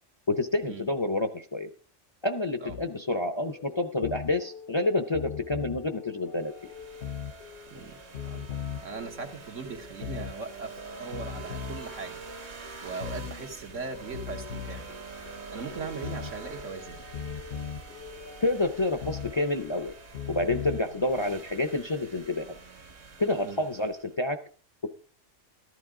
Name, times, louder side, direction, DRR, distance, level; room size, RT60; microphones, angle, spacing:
voice 1, 0.3-1.7 2.2-6.7 18.4-19.9 20.3-22.4 23.2-24.4, left 2 dB, 30° left, 8 dB, 0.5 m, -28 dB
sound 1, 2.7-21.7, left 7 dB, 60° left, 0.9 m, -41 dB
sound 2, 6.3-24.2, right 4 dB, 60° right, 1.5 m, -46 dB
voice 2, 8.8-12.2 12.5-14.9 15.5-17.0 23.4-23.6, right 4 dB, 80° right, 3 dB, 1.9 m, -39 dB
13.5 x 11.5 x 3.7 m, 0.39 s
omnidirectional pair, 1.3 m